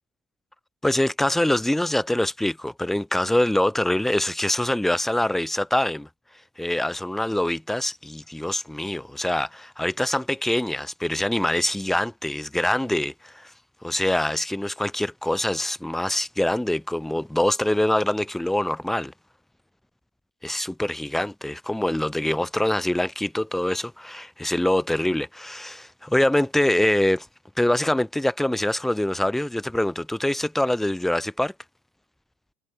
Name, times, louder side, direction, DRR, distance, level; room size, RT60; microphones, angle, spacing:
voice 1, 0.8-6.1 6.6-13.5 13.8-19.1 20.4-27.3 27.6-31.5, left 1 dB, 5° left, 5.9 m, -24 dB
figure-of-eight pair, 70°, 6 cm